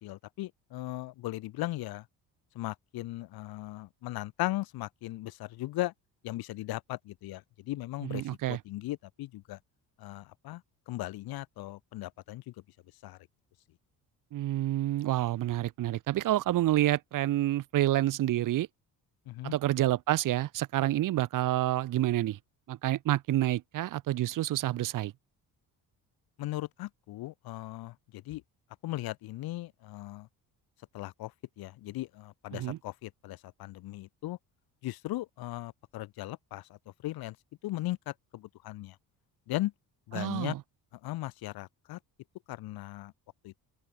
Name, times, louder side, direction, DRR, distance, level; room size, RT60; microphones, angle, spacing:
voice 1, 0.0-2.0 2.5-5.9 6.2-9.6 10.0-10.6 10.9-12.5 13.0-13.2 19.3-19.6 26.4-28.4 28.8-30.3 30.9-31.3 31.6-34.4 34.8-36.7 37.0-37.3 37.6-38.9 39.5-39.7 40.1-40.6 41.0-42.0 42.5-43.1 43.4-43.5, left 17 dB, 85° left, 1.8 m, -37 dB
voice 2, 8.0-8.6 14.3-18.7 19.4-22.4 22.7-25.1 32.5-32.8 40.1-40.6, right 14 dB, 60° right, 1.0 m, -28 dB
open air
cardioid pair, 135°, 36 cm